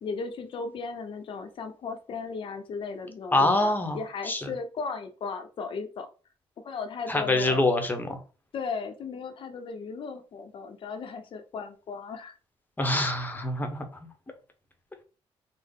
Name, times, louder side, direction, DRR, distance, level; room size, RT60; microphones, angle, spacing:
voice 1, 0.0-6.1 6.6-7.7 8.5-12.4, left 5 dB, 50° left, 6 dB, 0.6 m, -36 dB
voice 2, 3.3-4.0 4.3-4.5 7.1-8.2 12.8-13.9, left 2 dB, 15° left, 6 dB, 0.8 m, -25 dB
3.6 x 2.0 x 3.5 m, 0.36 s
cardioid pair, 100°, 11 cm